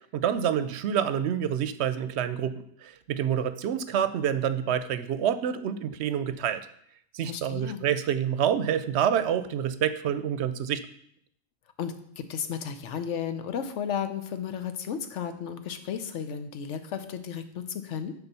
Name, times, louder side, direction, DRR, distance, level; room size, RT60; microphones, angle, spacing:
voice 1, 0.1-6.7 7.1-10.8, right 9 dB, 70° right, 13 dB, 0.8 m, -27 dB
voice 2, 7.2-7.8 11.8-18.1, left 8 dB, 80° left, 9 dB, 1.1 m, -34 dB
6.9 x 4.4 x 6.7 m, 0.67 s
omnidirectional pair, 1.2 m